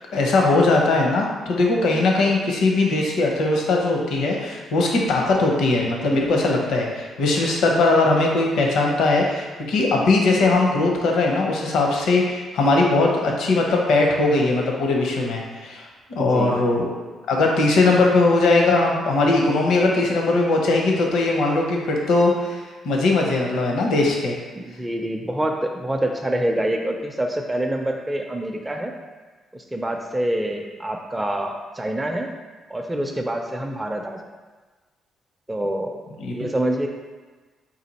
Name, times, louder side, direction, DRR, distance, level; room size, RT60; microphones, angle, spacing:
voice 1, 0.1-15.8 16.1-16.9 17.3-24.3 36.2-36.3, left 2 dB, 80° left, 0 dB, 0.7 m, -20 dB
voice 2, 16.2-16.6 24.6-28.9 29.5-32.3 32.7-34.2 35.5-36.0 36.3-36.9, right 1 dB, 10° right, 2 dB, 0.4 m, -26 dB
4.1 x 2.6 x 4.1 m, 1.3 s
cardioid pair, 90°, 0 cm